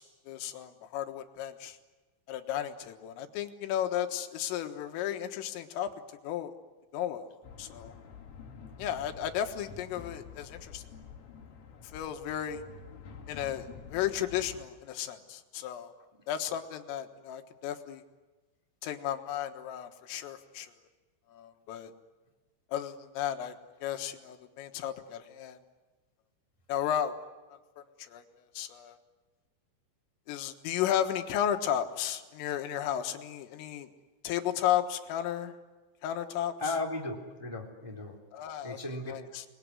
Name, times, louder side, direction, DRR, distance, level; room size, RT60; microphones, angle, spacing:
voice 1, 0.0-1.8 2.3-5.9 6.2-6.5 6.9-7.3 7.6-7.9 8.8-10.8 11.9-12.6 13.3-15.9 16.3-18.0 18.8-20.8 21.3-21.9 22.7-23.6 23.8-25.6 26.7-27.2 28.0-28.2 28.6-29.0 30.3-33.9 34.2-35.5 36.0-36.5 38.3-38.8 39.1-39.4, left 10 dB, 85° left, 6 dB, 4.1 m, -34 dB
sound 1, 7.4-14.6, left 6 dB, 55° left, 5.1 m, -48 dB
voice 2, 36.6-38.2 38.6-39.2, left 2 dB, 5° right, 0 dB, 2.4 m, -36 dB
29.0 x 21.5 x 9.7 m, 1.2 s
omnidirectional pair, 5.7 m